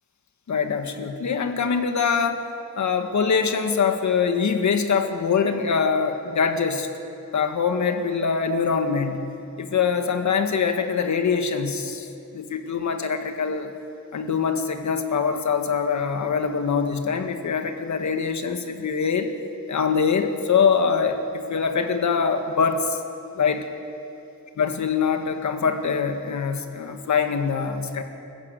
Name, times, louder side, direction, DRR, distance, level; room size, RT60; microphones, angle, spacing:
voice 1, 0.5-2.4 2.8-6.9 7.3-9.3 9.6-12.1 12.3-13.7 14.1-19.3 19.7-23.0 23.4-23.7 24.6-28.0, left 6 dB, 60° left, 6 dB, 1.8 m, -23 dB
25.0 x 15.0 x 8.3 m, 2.8 s
wide cardioid pair, 135°, 33 cm